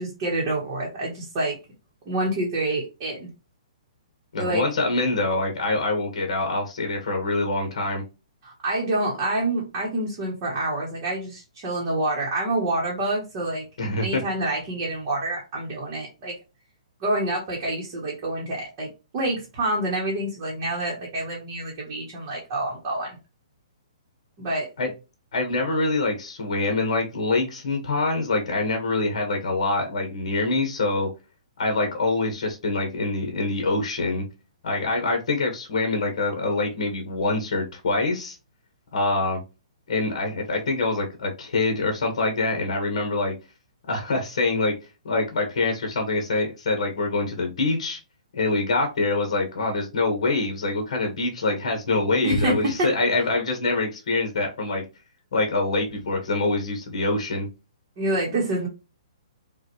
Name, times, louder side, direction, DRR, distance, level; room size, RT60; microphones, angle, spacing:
voice 1, 0.0-1.6 2.1-3.3 4.4-4.6 8.4-13.7 14.0-16.3 17.0-23.2 24.4-24.7 52.2-52.9 58.0-58.7, right 1 dB, 20° right, -4 dB, 1.1 m, -27 dB
voice 2, 4.3-8.0 13.8-14.2 24.8-24.9 25.3-31.1 31.6-34.2 34.6-38.4 38.9-39.4 39.9-43.3 43.9-44.7 45.0-48.0 48.3-54.8 55.3-57.5, left 2 dB, 50° left, 3 dB, 1.4 m, -25 dB
5.6 x 2.4 x 3.1 m, 0.28 s
hypercardioid pair, 175°, 4 cm